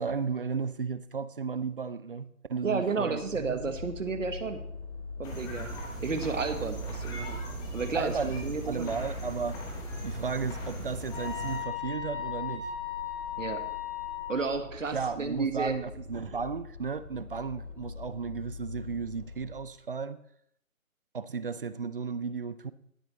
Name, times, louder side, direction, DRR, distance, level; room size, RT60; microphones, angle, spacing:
voice 1, 0.0-3.8 7.9-9.6 10.0-12.7 14.9-20.2 21.1-22.7, right 5 dB, 40° right, 0.5 m, -34 dB
voice 2, 2.6-4.6 5.2-5.7 6.0-7.4 7.7-8.9 13.4-13.6 14.3-15.7, right 4 dB, 65° right, 1.4 m, -32 dB
sound 1, 2.8-19.8, left 4 dB, 55° left, 3.2 m, -44 dB
sound 2, 5.2-11.6, right 2 dB, 10° left, 1.1 m, -38 dB
sound 3, 11.1-14.4, left 10 dB, 25° left, 4.3 m, -36 dB
18.0 x 7.5 x 3.1 m
figure-of-eight pair, 140°, 42 cm